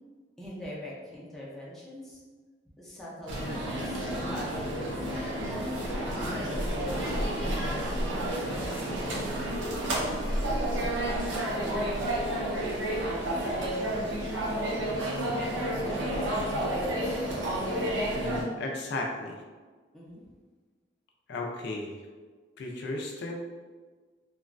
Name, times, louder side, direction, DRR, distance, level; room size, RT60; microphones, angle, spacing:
voice 1, 0.4-2.2 2.8-5.8 6.1-7.2 19.9-20.2, equal, ahead, -7 dB, 0.5 m, -42 dB
sound 1, 3.3-18.4, right 1 dB, 75° right, 0.6 m, -30 dB
voice 2, 18.1-19.4 21.3-22.0 22.6-23.4, left 2 dB, 65° left, 0 dB, 0.4 m, -35 dB
2.9 x 2.2 x 2.4 m, 1.4 s
head